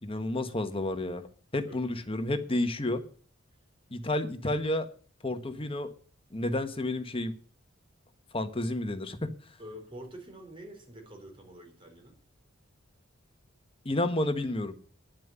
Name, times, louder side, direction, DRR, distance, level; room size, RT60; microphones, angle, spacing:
voice 1, 0.0-1.3 1.5-3.0 3.9-4.9 5.2-5.9 6.3-7.3 8.3-9.3 13.8-14.7, left 1 dB, 30° left, 8 dB, 1.3 m, -30 dB
voice 2, 1.6-2.1 9.6-12.2, equal, 25° right, 3 dB, 4.2 m, -47 dB
10.5 x 7.6 x 8.7 m, 0.41 s
head